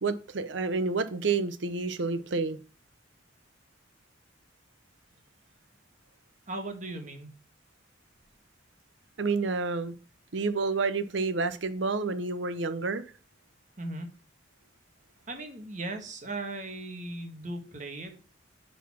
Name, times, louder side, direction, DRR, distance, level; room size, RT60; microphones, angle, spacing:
voice 1, 0.0-2.6 9.2-9.9 10.3-13.0, right 4 dB, 70° right, 0.8 m, -29 dB
voice 2, 6.5-7.3 13.8-14.1 15.3-18.2, right 2 dB, 40° right, 1.4 m, -37 dB
8.4 x 4.2 x 5.9 m
head